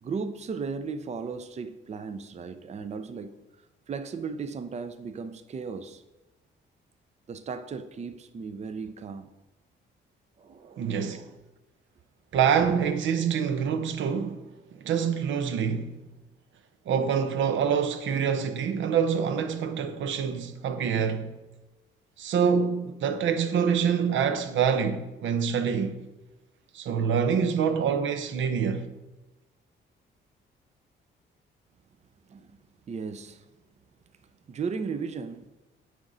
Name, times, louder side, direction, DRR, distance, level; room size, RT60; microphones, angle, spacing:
voice 1, 0.0-3.4 3.9-6.0 7.3-9.3 10.4-11.4 12.6-12.7 32.3-32.6 32.9-33.5 34.5-35.5, right 5 dB, 35° right, 0.5 m, -36 dB
voice 2, 10.8-11.2 12.3-14.4 14.8-15.9 16.9-21.4 22.2-26.0 26.7-28.9, right 7 dB, 75° right, 0.7 m, -26 dB
9.4 x 4.9 x 3.9 m
cardioid pair, 90°, 20 cm